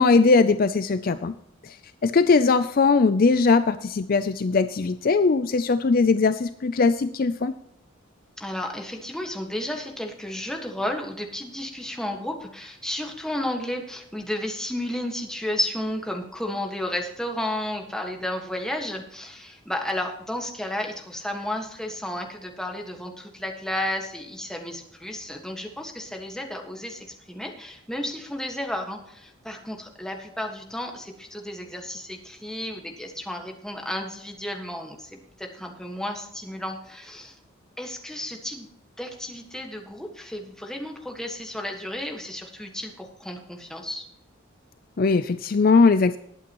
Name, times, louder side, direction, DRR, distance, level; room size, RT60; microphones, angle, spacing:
voice 1, 0.0-1.3 1.6-1.7 2.0-7.5 45.0-46.2, left 4 dB, 45° left, 11 dB, 0.4 m, -20 dB
voice 2, 8.4-37.4 37.8-38.7 39.0-44.1, left 1 dB, 5° left, 2 dB, 1.6 m, -32 dB
20.0 x 8.6 x 3.0 m, 0.73 s
head